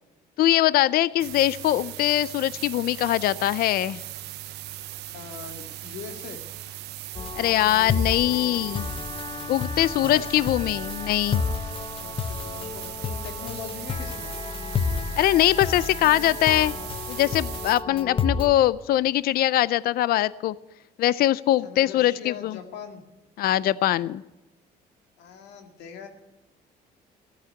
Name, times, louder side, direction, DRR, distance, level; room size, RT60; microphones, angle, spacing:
voice 1, 0.4-4.0 7.4-8.9 9.5-11.4 15.2-16.7 17.1-20.5 21.0-22.6 23.4-24.2, left 14 dB, 65° left, 19 dB, 0.5 m, -22 dB
sound 1, 1.2-17.8, right 14 dB, 80° right, 0.8 m, -39 dB
voice 2, 5.1-6.4 9.9-10.2 12.0-12.9 13.2-14.3 21.6-23.0 25.2-26.1, left 6 dB, 85° left, 5 dB, 2.0 m, -41 dB
sound 2, 7.1-18.5, left 5 dB, 30° left, 0.8 m, -31 dB
15.0 x 8.9 x 9.6 m, 1.0 s
cardioid pair, 110°, 17 cm